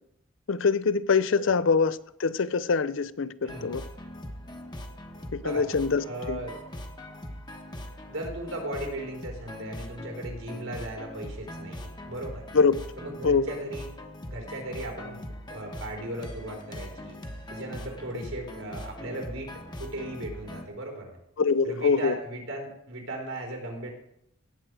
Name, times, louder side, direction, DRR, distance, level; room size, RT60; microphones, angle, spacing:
voice 1, 0.5-3.8 5.3-6.4 12.5-12.7 13.2-13.5 21.4-22.1, left 5 dB, 75° left, 0.6 m, -24 dB
voice 2, 3.4-3.8 5.4-5.6 6.1-6.6 8.1-12.4 13.0-13.9 14.3-15.2 15.5-17.2 17.5-19.5 19.8-21.2 21.6-23.9, right 1 dB, 90° right, 3.9 m, -37 dB
sound 1, 3.5-20.7, left 1 dB, 20° left, 1.1 m, -41 dB
17.5 x 7.8 x 4.8 m
head